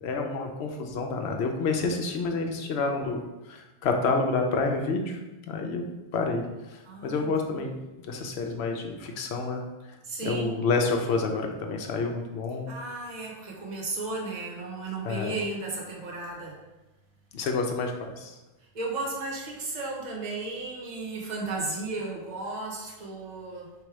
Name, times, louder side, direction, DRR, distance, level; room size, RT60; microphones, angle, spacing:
voice 1, 0.0-3.2 3.5-5.2 5.5-5.9 6.1-7.7 8.1-9.6 10.2-12.7 15.0-15.3 17.3-18.3, left 4 dB, 70° left, 3 dB, 0.9 m, -28 dB
voice 2, 6.8-7.3 10.0-10.5 12.7-16.6 18.7-23.7, right 3 dB, 40° right, -2 dB, 1.0 m, -34 dB
3.4 x 3.0 x 4.6 m, 1.1 s
omnidirectional pair, 1.2 m